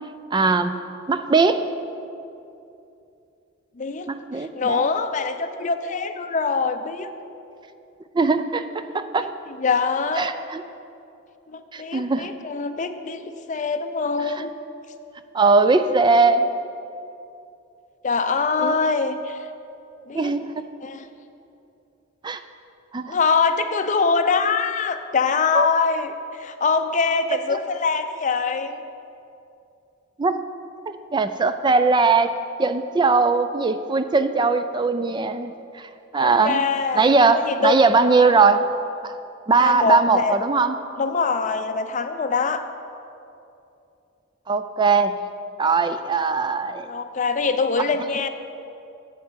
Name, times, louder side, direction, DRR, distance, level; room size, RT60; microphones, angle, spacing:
voice 1, 0.3-0.7 1.1-1.6 4.1-4.9 8.1-9.3 10.2-10.6 11.7-12.3 14.3-14.4 15.3-16.5 18.6-18.8 20.1-20.7 22.2-22.4 22.9-23.2 25.5-25.7 27.5-27.6 30.2-30.4 31.1-32.3 32.6-35.9 36.1-36.6 36.9-38.7 39.0-39.2 39.5-40.8 44.5-45.1 45.6-46.9, right 4 dB, 20° right, 10 dB, 0.3 m, -20 dB
voice 2, 3.8-4.1 4.6-7.1 9.2-9.3 9.6-10.3 11.5-14.5 18.0-19.4 20.1-20.3 20.8-21.1 23.1-28.8 36.2-37.8 38.3-38.4 39.6-40.4 41.0-42.6 46.9-48.3, left 4 dB, 35° left, 8 dB, 0.5 m, -23 dB
7.7 x 7.6 x 7.3 m, 2.7 s
head